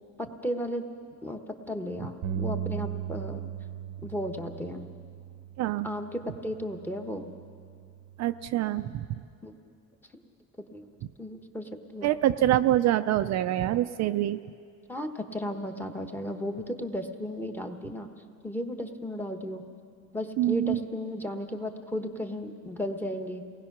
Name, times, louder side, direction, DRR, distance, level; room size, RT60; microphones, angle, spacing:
voice 1, 0.2-0.8 1.2-1.4 1.7-3.4 4.0-4.9 5.8-7.3 9.4-9.5 10.1-10.2 10.6-10.9 11.2-12.1 14.9-18.1 18.4-19.6 20.1-23.4, equal, 5° left, 5 dB, 1.0 m, -34 dB
Bass guitar, 2.2-8.5, right 9 dB, 75° right, 0.9 m, -38 dB
voice 2, 5.6-5.9 8.2-9.2 12.0-14.4 20.4-20.8, right 13 dB, 55° right, 9 dB, 0.4 m, -25 dB
28.5 x 19.0 x 5.9 m, 2.3 s
cardioid pair, 175°, 34 cm